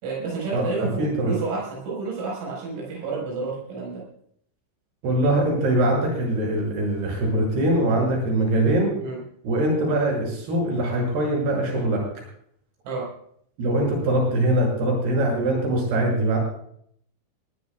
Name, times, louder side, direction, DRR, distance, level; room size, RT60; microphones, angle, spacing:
voice 1, 0.0-4.0 9.0-9.2 12.9-13.1, right 4 dB, 80° right, -3 dB, 7.3 m, -30 dB
voice 2, 1.0-1.3 5.0-8.9 9.4-12.0 13.6-16.4, right 1 dB, 55° right, -1 dB, 8.3 m, -22 dB
21.0 x 17.0 x 2.4 m, 0.66 s
omnidirectional pair, 5.7 m